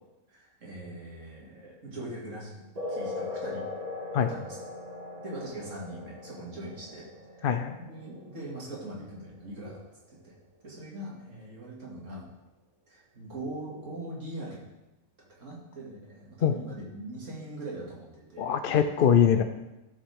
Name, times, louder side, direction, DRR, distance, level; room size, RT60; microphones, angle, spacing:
voice 1, 0.3-2.5 2.9-3.6 4.2-4.6 5.2-7.1 7.3-7.5 7.9-9.8 10.1-10.3 10.6-12.2 12.9-14.6 15.4-18.8 19.2-19.3, right 1 dB, 60° right, -4 dB, 2.7 m, -41 dB
sound 1, 2.8-9.8, left 2 dB, 30° right, 1.6 m, -40 dB
voice 2, 7.4-7.8 16.4-16.6 18.4-19.4, left 8 dB, 70° left, 8 dB, 0.5 m, -23 dB
11.5 x 7.2 x 3.6 m, 0.99 s
omnidirectional pair, 1.4 m